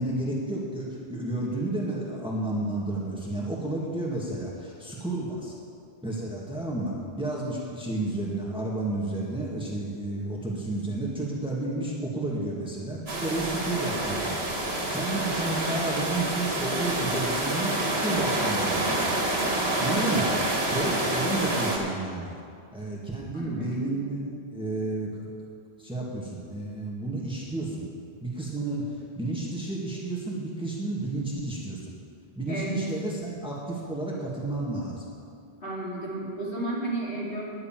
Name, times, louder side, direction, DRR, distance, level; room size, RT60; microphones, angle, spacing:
voice 1, 0.0-5.5 6.0-14.4 14.9-19.3 19.8-20.3 20.7-22.4 22.7-24.2 24.5-25.3 25.8-27.9 28.2-31.9 32.3-35.1, right 2 dB, 5° right, -4 dB, 1.8 m, -31 dB
sound 1, 13.1-21.8, right 1 dB, 70° right, 2.0 m, -27 dB
voice 2, 23.3-23.9 32.5-32.9 35.6-37.4, right 1 dB, 60° left, -6 dB, 3.1 m, -33 dB
10.5 x 6.7 x 9.0 m, 2.4 s
omnidirectional pair, 1.1 m